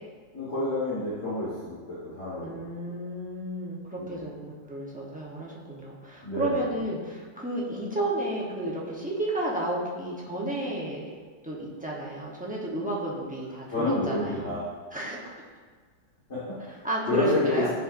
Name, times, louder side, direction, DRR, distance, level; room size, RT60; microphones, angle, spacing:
voice 1, 0.3-2.6 4.0-4.3 6.2-6.7 13.7-14.6 16.3-16.7 17.1-17.6, left 2 dB, 40° left, -12 dB, 2.0 m, -29 dB
voice 2, 2.4-11.1 11.4-14.5 14.9-15.3 16.8-17.7, right 1 dB, 5° right, -5 dB, 0.7 m, -32 dB
9.7 x 5.4 x 2.6 m, 1.5 s
omnidirectional pair, 1.9 m